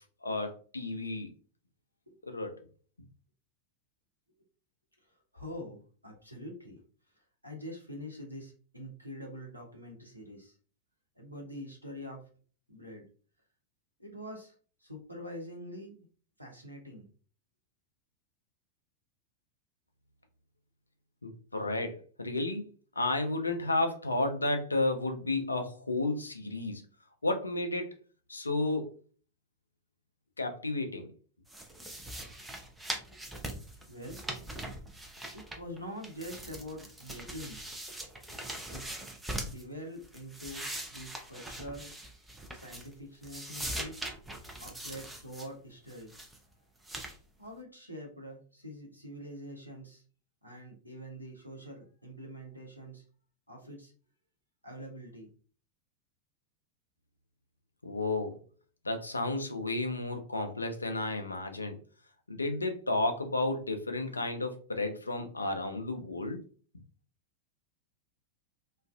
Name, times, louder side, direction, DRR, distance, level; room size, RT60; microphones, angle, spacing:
voice 1, 0.2-1.3 2.2-2.7 21.2-22.6 23.0-26.8 27.2-27.9 28.3-28.9 30.4-31.1 57.8-58.4 58.8-61.8 62.3-66.4, left 2 dB, 80° left, 6 dB, 0.4 m, -32 dB
voice 2, 5.3-6.8 7.4-10.5 11.2-12.3 12.7-13.1 14.0-14.5 14.8-16.1 16.4-17.1 33.1-33.2 33.6-34.2 35.3-37.6 38.7-38.8 39.4-41.9 42.5-43.9 44.6-46.1 47.4-50.0 50.4-53.0 53.5-53.9 54.6-55.3, equal, 90° right, 0 dB, 0.7 m, -45 dB
sound 1, 31.5-35.8 36.0-39.6 40.0-43.0 43.2-45.5 45.9-46.4 46.8-47.2, right 1 dB, 5° right, 0.5 m, -41 dB
2.4 x 2.3 x 2.3 m, 0.40 s
figure-of-eight pair, 90°, 0 cm